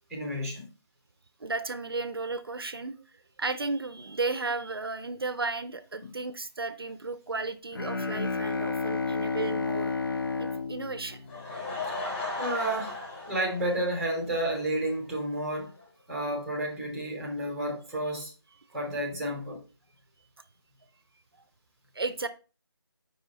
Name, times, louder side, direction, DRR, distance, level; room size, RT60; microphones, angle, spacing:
voice 1, 0.1-0.7 11.9-12.0 12.4-12.9 13.3-15.7 16.1-18.3 18.7-19.6, right 1 dB, ahead, 0.7 m, -31 dB
voice 2, 1.4-2.9 3.4-10.0 10.4-11.2 21.9-22.3, right 3 dB, 60° right, 0.6 m, -34 dB
Bowed string instrument, 7.7-12.0, left 4 dB, 55° left, 0.7 m, -31 dB
Laughter / Crowd, 11.1-14.6 14.9-15.0 15.5-15.6 15.8-15.9, left 3 dB, 30° left, 3.1 m, -36 dB
4.9 x 4.9 x 4.0 m
figure-of-eight pair, 160°, 14 cm